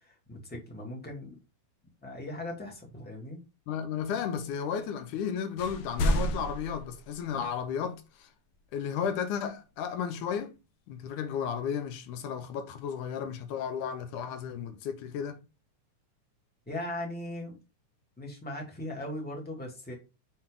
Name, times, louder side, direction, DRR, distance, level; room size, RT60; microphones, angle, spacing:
voice 1, 0.0-1.4 2.0-3.4 16.7-17.6 18.2-19.9, left 1 dB, 5° left, 1.8 m, -39 dB
voice 2, 3.7-8.3 8.7-10.5 10.9-15.4, left 7 dB, 85° left, 2.4 m, -33 dB
sound 1, 5.1-5.3 5.6-7.6, equal, 70° left, 1.8 m, -31 dB
6.4 x 4.5 x 3.7 m
omnidirectional pair, 3.5 m